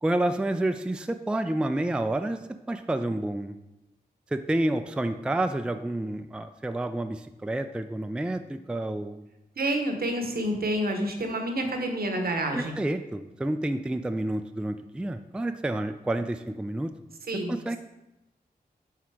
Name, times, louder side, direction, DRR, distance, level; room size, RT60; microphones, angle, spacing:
voice 1, 0.0-2.4 2.7-3.6 4.3-9.2 12.5-16.9 17.5-17.8, right 1 dB, 5° right, 8 dB, 0.3 m, -29 dB
voice 2, 9.6-12.8 17.3-17.5, right 1 dB, 70° right, 4 dB, 0.9 m, -28 dB
5.9 x 3.7 x 4.6 m, 0.94 s
cardioid pair, 50°, 16 cm